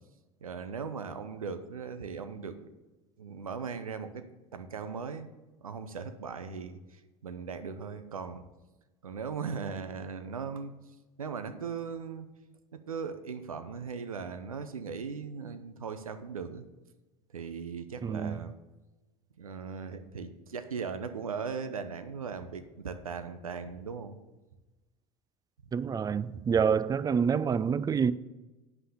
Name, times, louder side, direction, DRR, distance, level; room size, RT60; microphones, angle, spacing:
voice 1, 0.4-2.7 3.2-4.3 4.5-5.3 5.6-8.4 9.0-10.7 11.2-12.3 12.7-16.7 17.3-18.5 19.4-24.1, right 5 dB, 90° right, 0.7 m, -38 dB
voice 2, 18.0-18.4 25.7-28.1, right 6 dB, 20° right, 0.4 m, -27 dB
8.3 x 5.6 x 6.6 m
hypercardioid pair, 75°, 17 cm